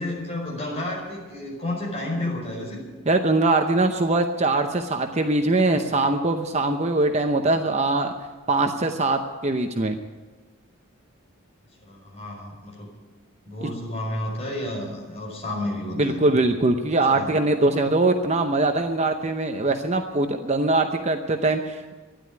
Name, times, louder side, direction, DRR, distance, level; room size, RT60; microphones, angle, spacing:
voice 1, 0.0-2.8 11.8-12.9 13.4-16.2 17.0-17.4, left 1 dB, 30° left, -2 dB, 4.9 m, -31 dB
voice 2, 3.1-8.1 8.5-10.0 13.6-13.7 16.0-21.9, right 2 dB, 30° right, 6 dB, 0.8 m, -22 dB
12.5 x 11.0 x 9.6 m, 1.3 s
head